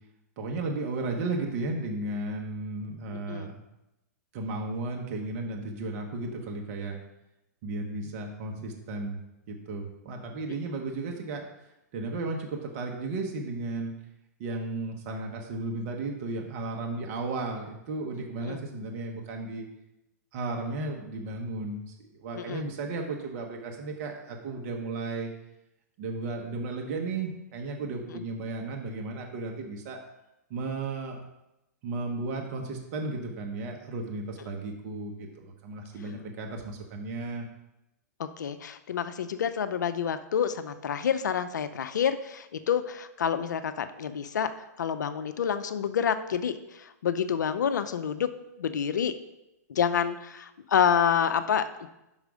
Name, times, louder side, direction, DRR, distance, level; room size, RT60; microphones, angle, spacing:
voice 1, 0.4-3.6 4.3-7.0 7.6-9.2 9.5-11.5 11.9-13.9 14.4-19.7 20.3-25.3 26.0-30.0 30.5-31.2 31.8-37.5, right 3 dB, 45° right, 2 dB, 1.1 m, -34 dB
voice 2, 38.2-44.5 44.8-48.3 48.6-49.1 49.7-51.9, left 8 dB, 85° left, 11 dB, 0.5 m, -28 dB
5.6 x 4.7 x 5.1 m, 0.91 s
hypercardioid pair, 130°, 10 cm